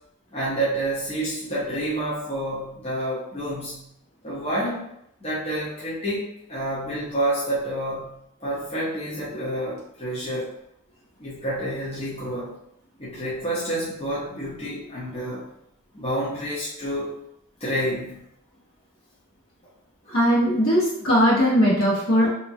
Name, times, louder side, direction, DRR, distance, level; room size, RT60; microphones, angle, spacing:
voice 1, 0.3-3.9 4.2-4.9 5.2-10.5 11.2-12.6 13.0-15.4 15.9-17.1 17.6-18.2 20.0-20.1, right 1 dB, 25° left, -9 dB, 0.7 m, -29 dB
voice 2, 20.1-22.3, equal, 65° left, -6 dB, 1.2 m, -19 dB
2.9 x 2.3 x 2.7 m, 0.77 s
head